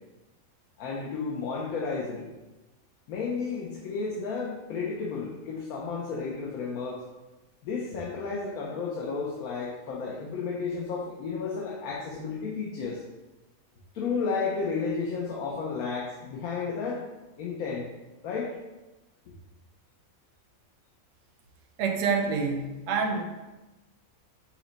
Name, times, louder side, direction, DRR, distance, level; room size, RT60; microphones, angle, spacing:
voice 1, 0.8-2.3 3.1-7.0 7.6-13.0 13.9-17.0 17.4-17.9 18.2-18.5, left 5 dB, 80° left, -4 dB, 1.1 m, -32 dB
voice 2, 21.8-23.2, right 5 dB, 65° right, 3 dB, 0.9 m, -27 dB
5.8 x 2.1 x 3.9 m, 1.1 s
omnidirectional pair, 1.5 m